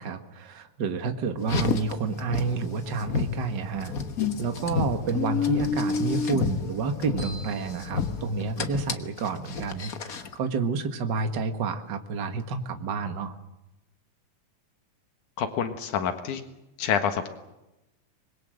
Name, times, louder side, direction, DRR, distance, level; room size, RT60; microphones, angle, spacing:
voice 1, 0.0-3.9 4.4-13.3, right 4 dB, 40° right, 7 dB, 1.9 m, -29 dB
Car, 1.4-10.4, left 6 dB, 50° left, 1.1 m, -30 dB
sound 1, 7.2-9.0, right 2 dB, 30° left, 8.3 m, -47 dB
voice 2, 15.4-16.4 16.8-17.3, left 7 dB, 85° left, 8 dB, 3.0 m, -27 dB
25.5 x 21.5 x 7.8 m, 0.93 s
omnidirectional pair, 3.4 m